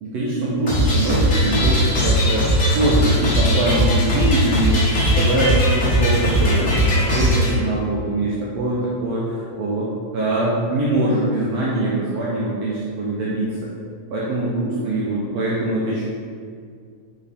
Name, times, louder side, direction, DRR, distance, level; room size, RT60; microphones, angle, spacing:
voice 1, 0.0-13.7 14.1-16.0, right 2 dB, 75° right, -6 dB, 1.5 m, -23 dB
sound 1, 0.7-7.5, equal, 45° left, 0.9 m, -18 dB
5.2 x 5.1 x 4.2 m, 2.2 s
omnidirectional pair, 3.8 m